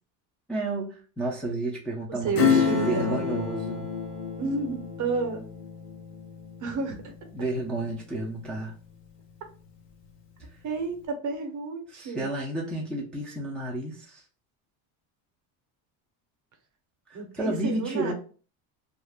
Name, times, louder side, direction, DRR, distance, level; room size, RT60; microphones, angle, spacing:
voice 1, 0.5-3.9 7.3-8.7 11.9-14.2 17.1-18.1, right 2 dB, ahead, -4 dB, 0.5 m, -31 dB
voice 2, 2.1-3.2 4.4-5.4 6.6-7.1 10.6-12.3 17.1-18.1, right 4 dB, 40° right, 4 dB, 0.8 m, -31 dB
Acoustic guitar / Strum, 2.3-8.6 8.9-9.0, left 7 dB, 85° left, 0.9 m, -29 dB
2.4 x 2.0 x 3.3 m, 0.39 s
supercardioid pair, 105°, 46 cm